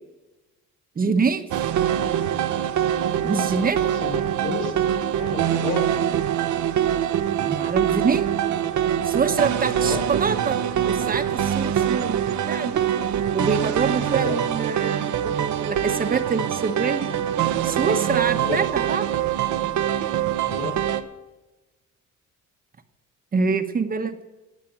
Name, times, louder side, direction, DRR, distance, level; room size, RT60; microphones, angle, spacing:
voice 1, 1.0-1.4 3.2-3.8 7.4-8.3 9.0-12.9 13.3-17.1 17.6-19.1 23.3-24.2, right 5 dB, 30° right, 8 dB, 1.1 m, -25 dB
sound 1, 1.5-21.0, right 10 dB, 70° right, 0.9 m, -24 dB
voice 2, 4.0-4.8 5.2-5.9 9.8-10.0 13.9-14.4 18.3-18.6 20.4-20.8, left 5 dB, 85° left, 1 dB, 4.9 m, -31 dB
19.0 x 7.5 x 6.0 m, 1.1 s
cardioid pair, 135°, 31 cm